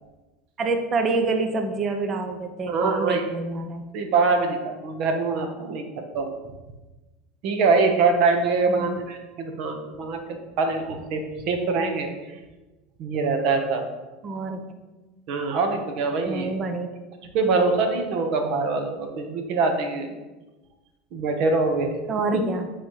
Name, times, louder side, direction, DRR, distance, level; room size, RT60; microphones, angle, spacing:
voice 1, 0.6-3.8 8.7-9.0 14.2-14.9 16.3-16.9 22.1-22.7, right 3 dB, 35° right, 7 dB, 0.7 m, -27 dB
voice 2, 2.7-3.2 3.9-5.8 6.1-6.3 7.4-10.2 10.6-12.4 13.0-13.8 15.3-16.5 17.3-20.1 21.1-22.0, right 4 dB, 60° right, 5 dB, 1.1 m, -24 dB
9.0 x 4.1 x 3.2 m, 1.1 s
hypercardioid pair, 95°, 0 cm